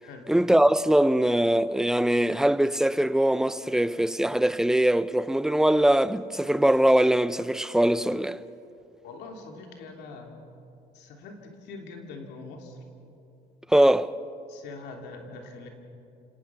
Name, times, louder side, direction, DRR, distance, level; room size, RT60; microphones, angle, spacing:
voice 1, 0.3-8.4 13.7-14.1, right 1 dB, 5° right, 0.6 m, -22 dB
voice 2, 9.0-10.4 10.9-12.8 14.5-15.7, left 3 dB, 90° left, 3.2 m, -43 dB
29.5 x 18.0 x 6.2 m
cardioid pair, 110°, 17 cm